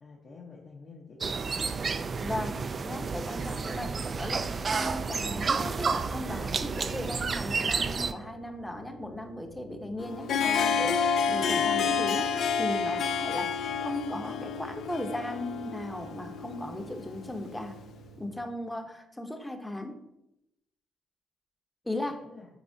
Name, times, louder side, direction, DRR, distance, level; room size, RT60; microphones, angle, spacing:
voice 1, 0.0-1.9 21.9-22.5, left 4 dB, 50° left, -3 dB, 1.0 m, -49 dB
sound 1, 1.2-8.1, right 5 dB, 40° right, 0.3 m, -31 dB
sound 2, 1.7-18.4, right 4 dB, 75° right, 1.2 m, -51 dB
voice 2, 2.2-2.6 2.8-11.0 11.3-12.3 12.6-17.7 18.2-20.0 21.8-22.2, left 1 dB, 10° left, 6 dB, 0.8 m, -37 dB
Harp, 10.0-17.7, left 6 dB, 70° left, 0.4 m, -29 dB
9.0 x 4.2 x 2.7 m, 0.86 s
cardioid pair, 90°, 0 cm